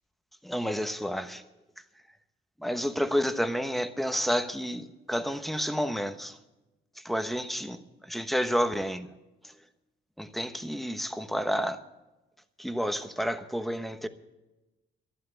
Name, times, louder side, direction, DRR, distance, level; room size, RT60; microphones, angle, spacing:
voice 1, 0.4-1.4 2.6-6.4 7.0-9.1 9.4-9.5 10.2-11.8 12.6-14.1, equal, ahead, 1.1 m, -30 dB
12.0 x 11.5 x 8.3 m
cardioid pair, 90°, 20 cm